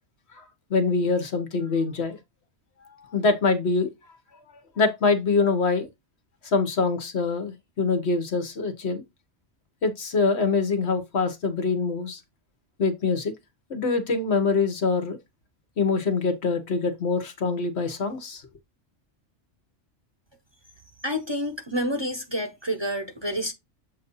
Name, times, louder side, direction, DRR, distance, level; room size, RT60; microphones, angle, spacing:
voice 1, 0.7-2.2 3.1-3.9 4.8-5.9 6.5-9.0 9.8-12.2 12.8-13.3 13.7-15.2 15.8-18.4, left 4 dB, 65° left, 1.5 m, -24 dB
voice 2, 21.0-23.5, equal, 25° right, 0.9 m, -28 dB
7.7 x 2.7 x 5.4 m
omnidirectional pair, 1.2 m